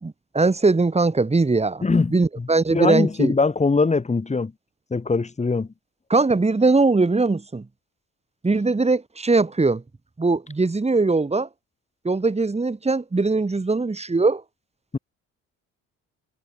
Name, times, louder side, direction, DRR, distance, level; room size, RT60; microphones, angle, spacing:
voice 1, 0.0-1.8 2.1-3.3 6.1-7.7 8.4-9.8 10.2-11.5 12.0-14.4, right 3 dB, 20° right, 4.0 m, -20 dB
voice 2, 1.8-4.5 4.9-5.7 14.9-15.0, left 4 dB, 20° left, 2.1 m, -22 dB
cardioid pair, 90°, 30 cm